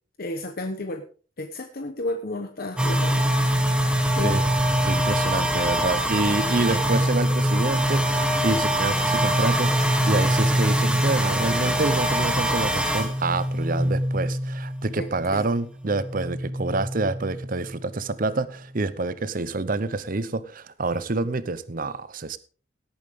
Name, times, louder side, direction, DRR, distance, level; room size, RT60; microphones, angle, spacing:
voice 1, 0.2-1.0 1.4-3.3 4.2-4.4 15.0-15.4, left 2 dB, 50° left, 7 dB, 1.0 m, -32 dB
sound 1, 2.8-15.5 15.8-18.2, equal, 5° right, 1.6 m, -24 dB
voice 2, 4.9-22.4, right 3 dB, 45° right, 15 dB, 0.7 m, -27 dB
17.5 x 8.7 x 3.6 m, 0.38 s
head